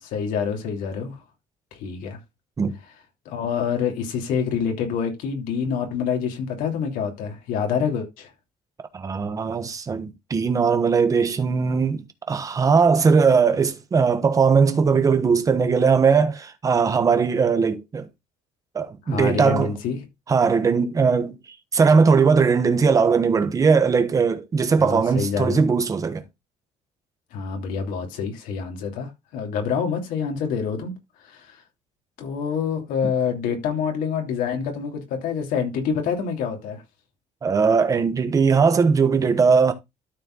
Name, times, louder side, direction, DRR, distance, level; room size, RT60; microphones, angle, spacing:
voice 1, 0.0-1.2 1.7-2.2 3.2-8.3 19.1-20.1 24.8-25.6 27.3-30.9 31.2-31.6 32.2-36.8, left 6 dB, 85° left, 2.9 m, -27 dB
voice 2, 8.9-12.0 12.3-18.1 18.7-19.7 20.3-21.4 21.7-26.2 37.4-39.7, right 5 dB, 25° right, 1.2 m, -19 dB
12.5 x 4.4 x 3.9 m
cardioid pair, 155°, 14 cm